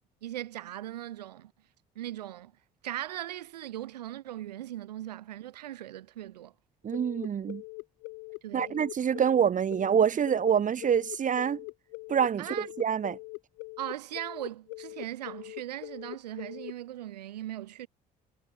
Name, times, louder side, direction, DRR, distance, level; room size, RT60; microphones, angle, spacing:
voice 1, 0.2-1.5 2.0-2.5 2.8-6.5 8.4-8.9 12.4-12.7 13.8-17.9, right 13 dB, 75° right, 5.8 m, -39 dB
voice 2, 6.8-7.6 8.5-11.6 12.1-13.2, right 8 dB, 40° right, 2.4 m, -26 dB
sound 1, 6.9-16.7, left 31 dB, 65° left, 5.3 m, -42 dB
figure-of-eight pair, 50°, 21 cm